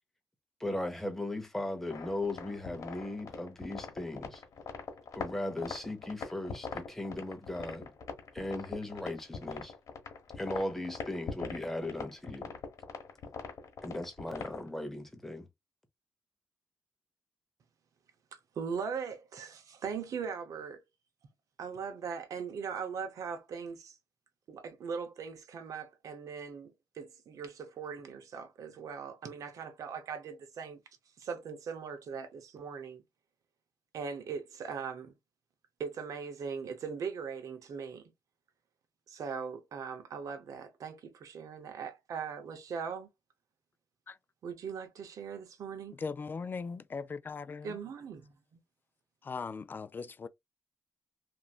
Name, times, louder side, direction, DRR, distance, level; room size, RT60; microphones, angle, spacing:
voice 1, 0.6-4.4 5.1-7.9 8.3-9.7 10.4-12.5 13.8-15.5, left 1 dB, 5° left, 0.8 m, -37 dB
sound 1, 1.9-14.7, left 5 dB, 70° left, 1.1 m, -42 dB
voice 2, 18.6-20.8 21.6-24.0 24.5-30.8 31.2-33.0 33.9-35.1 35.8-38.1 39.1-43.1 44.4-46.0 47.6-48.3, right 6 dB, 75° right, 0.7 m, -40 dB
voice 3, 46.0-47.8 49.2-50.3, left 5 dB, 35° left, 0.3 m, -39 dB
3.0 x 2.6 x 2.3 m
cardioid pair, 95°, 6 cm